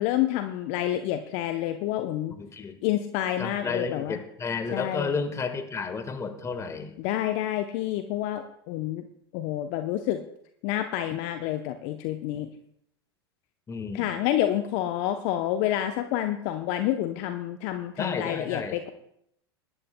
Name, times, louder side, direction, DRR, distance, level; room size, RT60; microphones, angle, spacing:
voice 1, 0.0-2.4 2.8-4.2 4.7-5.1 7.0-9.0 9.3-10.2 10.6-12.5 13.9-18.9, left 12 dB, 55° left, 8 dB, 0.7 m, -28 dB
voice 2, 2.4-2.8 3.4-6.9 13.7-14.1 18.0-18.8, left 5 dB, 20° left, 7 dB, 1.5 m, -32 dB
21.0 x 11.0 x 2.2 m, 0.73 s
hypercardioid pair, 85°, 14 cm